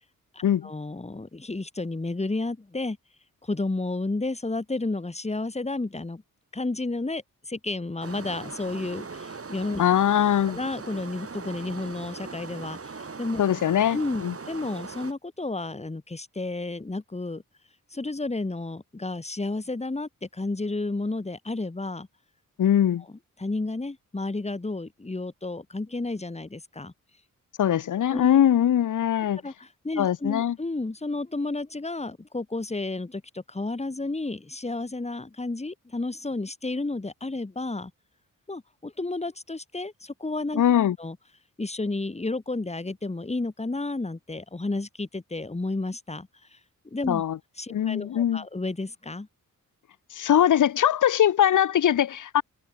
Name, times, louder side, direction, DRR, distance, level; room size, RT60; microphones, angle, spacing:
voice 1, 0.3-3.0 3.4-6.2 6.5-9.8 10.5-13.4 13.9-17.4 17.9-22.1 23.4-26.9 28.1-28.4 29.4-37.9 38.5-40.6 41.0-41.2 41.6-46.6 46.8-47.2 47.6-49.3, left 2 dB, 20° left, 2.1 m, -32 dB
sound 1, 8.0-15.1, right 4 dB, 40° right, 4.0 m, -40 dB
voice 2, 9.8-10.6 13.4-14.3 22.6-23.0 27.6-29.4 30.0-30.6 40.6-41.0 47.1-47.4 47.7-48.4 50.1-52.4, left 10 dB, 60° left, 0.8 m, -21 dB
cardioid pair, 70°, 34 cm